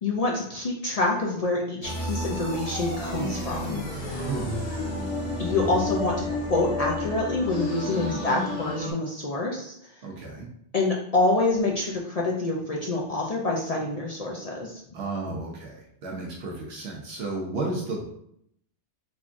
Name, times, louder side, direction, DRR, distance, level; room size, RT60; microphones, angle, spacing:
voice 1, 0.0-4.2 5.4-9.7 10.7-14.8, left 2 dB, 50° left, -2 dB, 0.4 m, -27 dB
sound 1, 1.8-8.9, left 1 dB, 70° left, 1.7 m, -31 dB
voice 2, 4.2-4.6 7.9-8.2 10.0-10.5 14.9-18.0, right 3 dB, 70° right, -2 dB, 1.0 m, -33 dB
3.6 x 3.4 x 2.5 m, 0.71 s
omnidirectional pair, 1.1 m